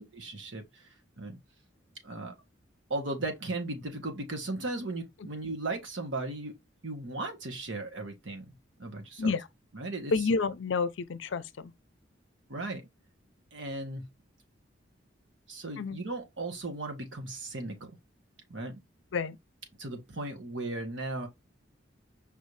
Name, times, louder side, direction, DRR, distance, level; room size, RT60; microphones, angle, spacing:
voice 1, 0.0-1.4 2.0-2.3 2.9-6.5 6.8-8.5 8.8-9.3 9.7-10.1 12.5-12.9 13.5-14.1 15.5-18.0 18.5-18.8 19.8-21.3, right 2 dB, 75° right, 1.4 m, -36 dB
voice 2, 10.1-11.7 15.8-16.0 19.1-19.4, left 4 dB, 80° left, 0.5 m, -29 dB
5.3 x 2.7 x 3.3 m
head